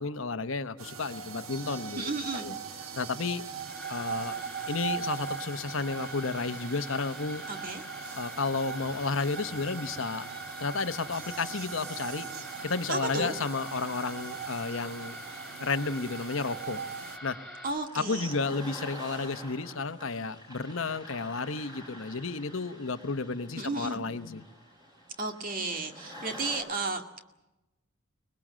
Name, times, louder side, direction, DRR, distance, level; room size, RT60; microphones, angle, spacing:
voice 1, 0.0-2.5 3.0-3.4 3.9-4.4 4.7-7.4 8.1-10.3 10.6-12.3 12.6-15.2 15.6-16.8 17.2-17.4 17.9-24.4, left 4 dB, 70° left, 11 dB, 1.0 m, -32 dB
sound 1, 0.8-17.2, right 7 dB, 80° right, 1.4 m, -40 dB
voice 2, 2.0-2.5 7.5-7.8 12.9-13.3 17.6-18.3 23.6-24.0 25.2-27.2, right 3 dB, 40° right, 5 dB, 2.1 m, -33 dB
sound 2, 3.5-17.7, equal, ahead, 6.7 m, -44 dB
sound 3, 12.5-26.6, equal, 20° right, 7.0 m, -49 dB
25.0 x 20.5 x 7.5 m, 0.98 s
head